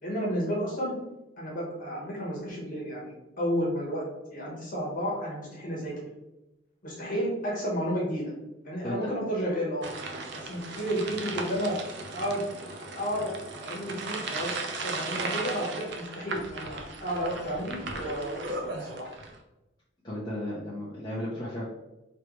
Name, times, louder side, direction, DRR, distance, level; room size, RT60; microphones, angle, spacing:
voice 1, 0.0-0.9 1.4-4.0 4.3-6.0 6.8-8.3 8.6-9.9 10.3-11.8 12.1-12.4 12.9-13.3 13.6-14.5 14.8-19.1, equal, 40° left, -4 dB, 1.2 m, -32 dB
sound 1, 9.8-19.4, right 3 dB, 55° right, 0.5 m, -36 dB
voice 2, 20.0-21.7, left 1 dB, 20° left, -9 dB, 0.8 m, -34 dB
3.2 x 3.1 x 3.0 m, 0.97 s
head